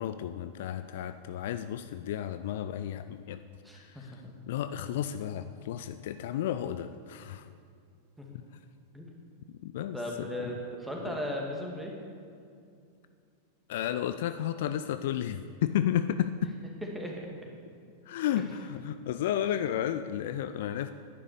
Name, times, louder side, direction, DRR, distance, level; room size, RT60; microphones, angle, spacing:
voice 1, 0.0-3.4 3.7-4.1 4.5-7.5 8.3-8.6 9.6-10.5 13.7-16.5 18.1-20.9, left 10 dB, 55° left, 11 dB, 0.4 m, -32 dB
voice 2, 3.6-4.3 8.2-8.4 8.9-9.2 9.9-11.9 16.8-17.3 18.4-18.5, left 1 dB, 5° right, -1 dB, 2.3 m, -37 dB
10.5 x 10.0 x 6.7 m, 2.3 s
figure-of-eight pair, 90°, 0 cm